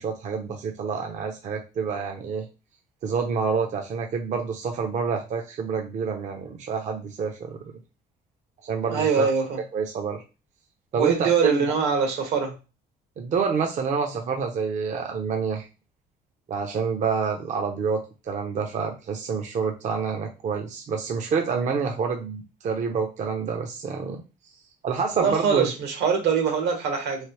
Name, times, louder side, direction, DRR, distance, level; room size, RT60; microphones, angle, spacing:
voice 1, 0.0-2.5 3.0-7.6 8.6-9.3 9.7-10.2 10.9-11.6 13.2-15.7 16.5-24.2 24.8-25.7, right 5 dB, 45° right, 2 dB, 0.5 m, -28 dB
voice 2, 8.9-9.6 11.0-12.5 25.2-27.2, right 6 dB, 80° right, 3 dB, 1.2 m, -23 dB
3.1 x 2.7 x 3.0 m, 0.30 s
cardioid pair, 110°, 17 cm